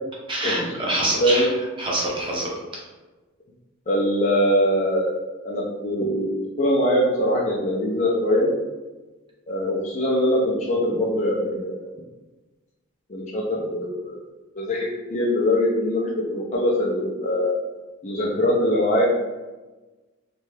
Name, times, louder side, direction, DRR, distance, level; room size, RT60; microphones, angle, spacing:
voice 1, 0.3-1.5 1.8-2.9, right 1 dB, 25° right, -3 dB, 0.6 m, -26 dB
voice 2, 3.9-5.1 5.4-6.3 6.6-8.5 9.5-11.9 13.1-14.2 14.6-17.5 18.0-19.1, equal, 35° left, -4 dB, 0.4 m, -22 dB
2.7 x 2.2 x 3.2 m, 1.2 s
head